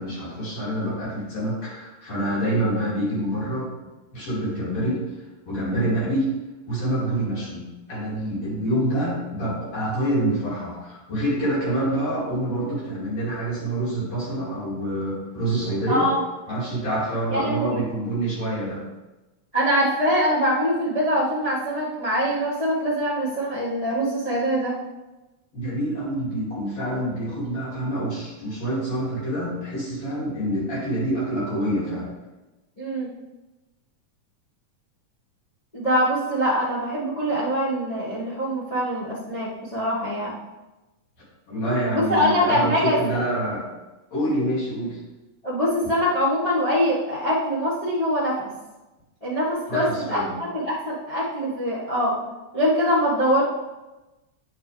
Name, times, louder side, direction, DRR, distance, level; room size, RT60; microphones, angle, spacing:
voice 1, 0.0-3.7 4.1-5.0 5.5-6.3 6.7-16.1 16.5-18.8 25.5-32.1 41.5-43.6 44.1-45.0 49.7-50.3, right 1 dB, 60° left, -8 dB, 4.0 m, -26 dB
voice 2, 15.9-16.2 17.3-17.8 19.5-24.8 32.8-33.1 35.7-40.3 41.9-43.2 45.4-48.5 49.2-52.1 52.5-53.4, equal, 20° left, -9 dB, 1.1 m, -23 dB
9.7 x 5.3 x 3.3 m, 1.1 s
omnidirectional pair, 3.4 m